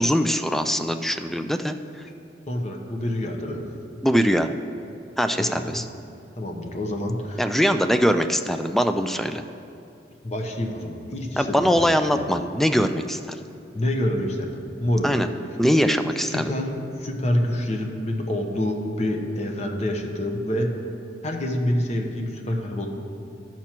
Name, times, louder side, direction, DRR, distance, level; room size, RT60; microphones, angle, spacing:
voice 1, 0.0-1.8 4.0-4.5 5.2-5.8 7.4-9.4 11.4-13.2 15.0-15.3 15.6-16.5, equal, ahead, 8 dB, 0.3 m, -22 dB
voice 2, 2.5-3.6 5.4-5.8 6.4-7.4 10.2-12.2 13.7-15.1 16.3-20.7 21.2-22.9, left 1 dB, 35° left, 2 dB, 0.9 m, -27 dB
13.0 x 6.0 x 4.4 m, 2.6 s
head